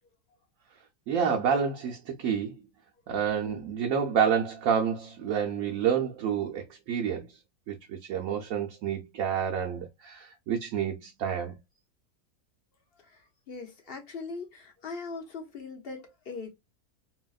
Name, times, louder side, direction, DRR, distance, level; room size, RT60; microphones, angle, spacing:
voice 1, 1.1-2.5 3.1-7.3 7.7-11.5, right 7 dB, 70° right, 0.9 m, -29 dB
voice 2, 12.9-16.5, left 4 dB, 55° left, 0.6 m, -41 dB
2.9 x 2.8 x 2.2 m
omnidirectional pair, 1.6 m